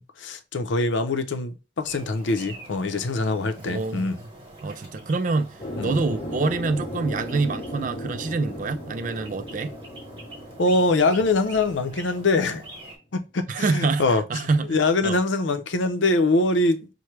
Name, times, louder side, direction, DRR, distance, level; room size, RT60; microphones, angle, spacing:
voice 1, 0.0-4.2 5.8-5.9 10.6-12.6 13.1-14.2 14.7-16.9, left 2 dB, 85° left, 0.6 m, -23 dB
sound 1, 1.8-13.0, right 1 dB, 25° right, 1.3 m, -45 dB
voice 2, 3.6-4.1 4.6-9.8 13.5-15.2, right 3 dB, 45° right, 0.4 m, -26 dB
sound 2, 5.6-12.4, left 1 dB, 25° left, 0.8 m, -36 dB
5.8 x 2.1 x 3.2 m
head